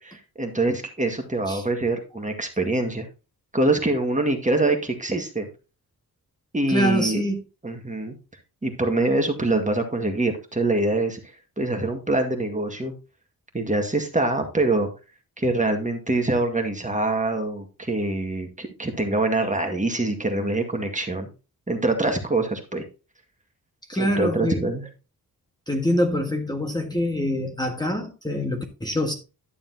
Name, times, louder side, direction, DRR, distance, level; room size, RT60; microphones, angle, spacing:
voice 1, 0.4-3.1 3.5-5.5 6.5-7.2 7.6-8.2 8.6-11.2 11.6-12.9 13.5-14.9 15.4-21.3 21.7-22.8 23.9-24.9, right 2 dB, 20° right, 1.8 m, -24 dB
voice 2, 6.7-7.4 23.9-24.6 25.7-29.1, equal, 10° left, 1.6 m, -25 dB
11.5 x 7.0 x 2.8 m
cardioid pair, 80°, 37 cm